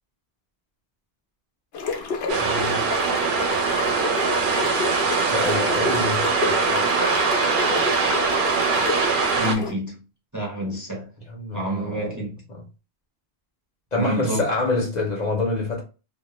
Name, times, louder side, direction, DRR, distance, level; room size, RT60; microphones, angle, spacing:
sound 1, 1.7-9.7, left 5 dB, 75° left, 0.9 m, -30 dB
sound 2, 2.3-9.5, right 4 dB, 60° right, 0.7 m, -22 dB
voice 1, 2.4-2.8 5.3-6.9 11.3-12.2 12.5-12.6 13.9-15.8, left 2 dB, 45° left, 0.8 m, -27 dB
voice 2, 9.4-10.0 10.3-11.1 11.5-12.4 13.9-14.5, equal, 20° right, 0.7 m, -28 dB
2.2 x 2.1 x 3.0 m
omnidirectional pair, 1.0 m